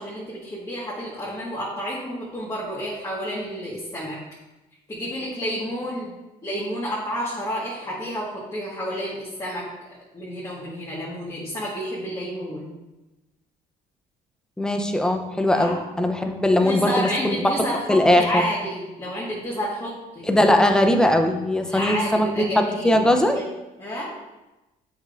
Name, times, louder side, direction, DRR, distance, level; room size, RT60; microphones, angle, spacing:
voice 1, 0.0-4.2 4.9-6.1 6.4-9.7 10.1-12.7 15.5-15.8 16.6-20.3 21.6-23.1 23.3-23.4 23.8-24.1, equal, 20° left, -7 dB, 1.5 m, -30 dB
voice 2, 14.6-17.3 17.9-18.4 20.2-22.5 22.8-23.4, left 1 dB, 5° left, 4 dB, 0.6 m, -20 dB
7.9 x 5.1 x 2.5 m, 1.0 s
cardioid pair, 110°, 17 cm